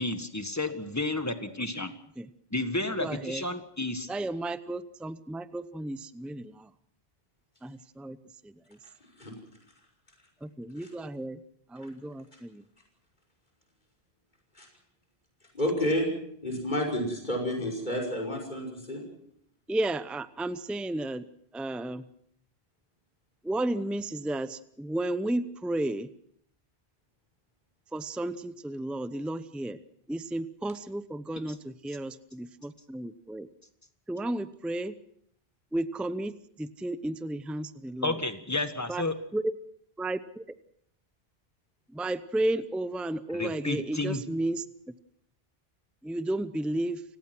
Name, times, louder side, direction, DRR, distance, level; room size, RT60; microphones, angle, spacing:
voice 1, 0.0-1.9 2.5-4.1 38.0-39.1 43.3-44.3, left 2 dB, 15° left, 8 dB, 1.7 m, -31 dB
voice 2, 2.8-3.4 4.1-6.7 7.6-8.2 8.4-8.5 10.4-11.4 11.7-12.6 19.7-21.3 21.5-22.1 23.4-26.1 27.9-29.8 30.1-33.5 34.1-35.0 35.7-38.2 38.9-39.0 39.3-39.5 40.0-40.6 41.9-45.0 46.0-47.0, right 1 dB, ahead, 13 dB, 0.6 m, -33 dB
voice 3, 15.5-16.1 16.4-19.0, equal, 50° left, -1 dB, 5.8 m, -30 dB
30.0 x 17.5 x 6.1 m, 0.68 s
omnidirectional pair, 1.0 m